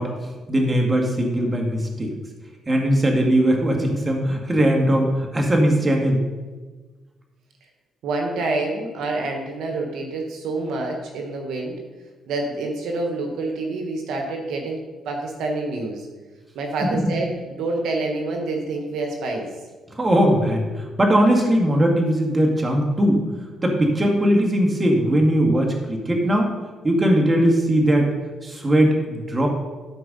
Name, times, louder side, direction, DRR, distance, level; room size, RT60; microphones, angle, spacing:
voice 1, 0.0-2.1 2.7-6.2 16.9-17.1 20.0-23.2 23.6-26.5 26.8-28.1 28.4-29.5, right 1 dB, 25° right, 1 dB, 2.1 m, -19 dB
voice 2, 8.0-11.8 12.3-16.1 16.5-19.5, right 2 dB, 80° right, 2 dB, 1.4 m, -27 dB
12.5 x 4.7 x 5.4 m, 1.3 s
cardioid pair, 90°, 0 cm